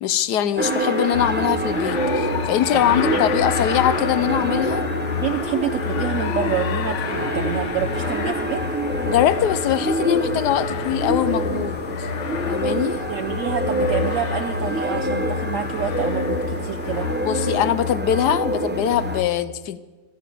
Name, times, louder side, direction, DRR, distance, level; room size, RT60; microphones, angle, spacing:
voice 1, 0.0-4.8 9.0-12.1 12.5-13.0 17.2-19.8, left 11 dB, 80° left, 15 dB, 1.3 m, -22 dB
sound 1, 0.6-17.5, left 9 dB, 60° left, 0.8 m, -33 dB
sound 2, 0.6-19.2, right 1 dB, 15° right, 0.4 m, -27 dB
sound 3, 1.1-19.3, left 7 dB, 35° left, 1.4 m, -31 dB
voice 2, 2.7-3.4 5.2-8.7 13.1-17.1, right 9 dB, 65° right, 9 dB, 0.9 m, -28 dB
14.0 x 11.0 x 9.3 m, 1.3 s
omnidirectional pair, 1.8 m